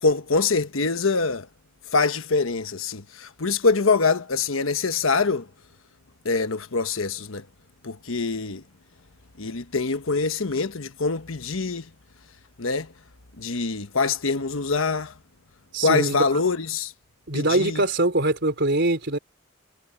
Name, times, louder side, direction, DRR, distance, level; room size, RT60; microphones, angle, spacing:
voice 1, 0.0-1.5 1.9-5.5 6.2-7.5 7.8-8.6 9.4-11.9 12.6-12.9 13.4-15.1 15.8-16.9 17.3-17.8, left 4 dB, 80° left, 1.2 m, -24 dB
voice 2, 15.7-16.2 17.3-19.2, right 2 dB, 60° right, 4.0 m, -23 dB
head